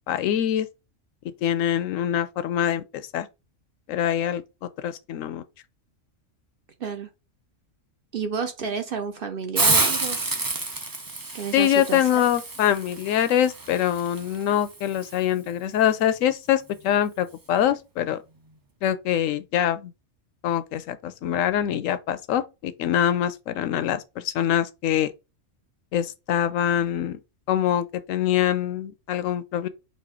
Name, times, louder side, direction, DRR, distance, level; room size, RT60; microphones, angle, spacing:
voice 1, 0.1-0.7 1.4-3.3 3.9-5.4 11.5-18.2 18.8-19.9 20.4-25.1 25.9-27.2 27.5-29.7, left 10 dB, 80° left, 1.0 m, -24 dB
voice 2, 6.8-7.1 8.1-10.2 11.3-12.2, right 6 dB, 55° right, 0.7 m, -31 dB
Hiss, 9.5-15.2, right 3 dB, 30° right, 0.4 m, -28 dB
4.1 x 2.6 x 4.8 m
omnidirectional pair, 1.3 m